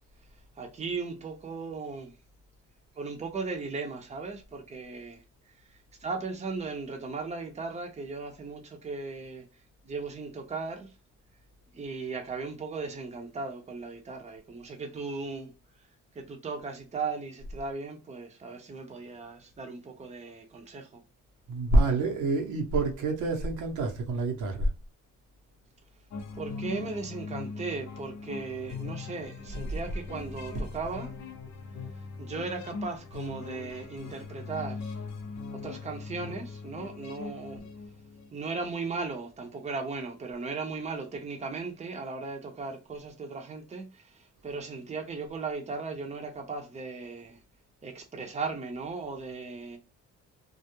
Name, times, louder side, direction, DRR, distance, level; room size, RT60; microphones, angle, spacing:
voice 1, 0.6-2.2 3.0-5.2 5.7-9.5 9.8-10.9 11.7-15.5 16.1-21.0 26.3-31.2 32.2-35.0 35.5-37.7 38.3-47.4 47.8-49.8, right 4 dB, 20° right, 0.6 m, -37 dB
voice 2, 21.5-24.7 30.2-30.6, right 2 dB, 75° right, 0.8 m, -27 dB
sound 1, 26.1-38.4, left 4 dB, 65° left, 0.6 m, -40 dB
2.3 x 2.0 x 2.9 m
cardioid pair, 90°, 30 cm